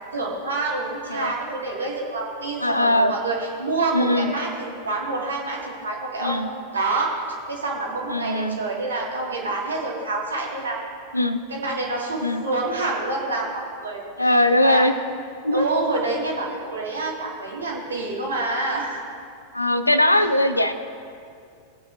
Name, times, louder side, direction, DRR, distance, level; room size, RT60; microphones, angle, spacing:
voice 1, 0.1-7.1 7.5-10.8 11.5-14.8 15.5-19.0 20.1-20.3, right 2 dB, 70° right, -3 dB, 2.2 m, -27 dB
voice 2, 2.6-3.1 3.9-4.3 6.2-6.5 8.1-8.6 11.1-11.4 12.2-12.4 14.2-14.9 15.4-15.7 19.5-20.7, left 1 dB, 85° left, 11 dB, 0.5 m, -20 dB
19.5 x 8.6 x 2.7 m, 2.4 s
figure-of-eight pair, 90°, 0 cm